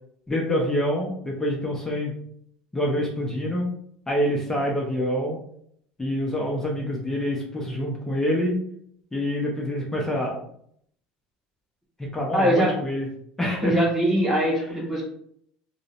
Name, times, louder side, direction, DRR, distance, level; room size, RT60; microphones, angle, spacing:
voice 1, 0.3-2.1 2.7-3.7 4.1-5.4 6.0-8.6 9.1-10.5 12.0-13.1 13.4-13.7, equal, 15° left, -2 dB, 0.6 m, -26 dB
voice 2, 12.3-12.7 13.6-15.0, equal, 5° right, -6 dB, 1.2 m, -22 dB
2.6 x 2.0 x 2.5 m, 0.68 s
supercardioid pair, 110°, 4 cm